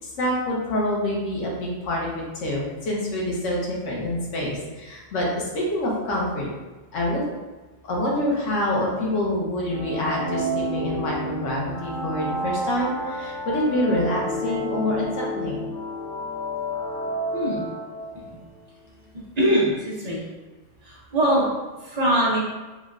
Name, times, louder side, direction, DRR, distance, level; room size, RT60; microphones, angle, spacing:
voice 1, 0.0-6.5 6.9-7.2 7.9-15.6, left 1 dB, 90° left, -3 dB, 1.1 m, -26 dB
sound 1, 9.7-18.3, equal, 50° left, 0.7 m, -30 dB
voice 2, 17.3-17.7 19.4-20.2 20.8-21.5 21.8-22.4, right 1 dB, 45° right, -5 dB, 0.6 m, -22 dB
3.6 x 2.1 x 2.4 m, 1.2 s
omnidirectional pair, 1.2 m